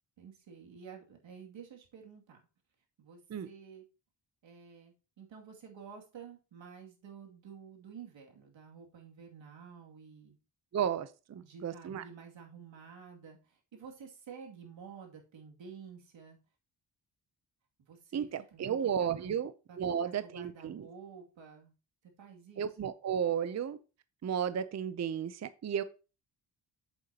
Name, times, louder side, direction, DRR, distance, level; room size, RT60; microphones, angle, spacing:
voice 1, 0.2-2.4 3.0-3.8 4.4-10.4 11.4-16.4 17.8-18.7 19.0-19.3 19.7-21.7 22.2-22.7, right 6 dB, 90° right, 1 dB, 2.4 m, -51 dB
voice 2, 10.7-12.0 18.1-19.5 19.8-20.9 22.6-23.8 24.2-25.8, right 8 dB, 40° right, 13 dB, 0.5 m, -33 dB
8.1 x 7.9 x 2.8 m, 0.32 s
wide cardioid pair, 125°, 44 cm